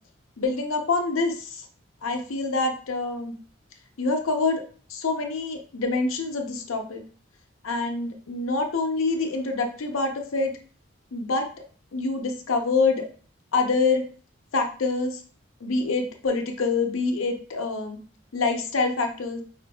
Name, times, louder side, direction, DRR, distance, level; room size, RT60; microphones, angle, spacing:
voice 1, 0.4-1.6 2.0-3.3 4.0-4.6 4.9-7.0 7.6-10.5 11.1-11.4 11.9-13.0 13.5-14.0 14.5-15.2 15.6-18.0 18.3-19.4, left 3 dB, 85° left, 4 dB, 0.6 m, -26 dB
5.0 x 2.5 x 2.2 m, 0.41 s
head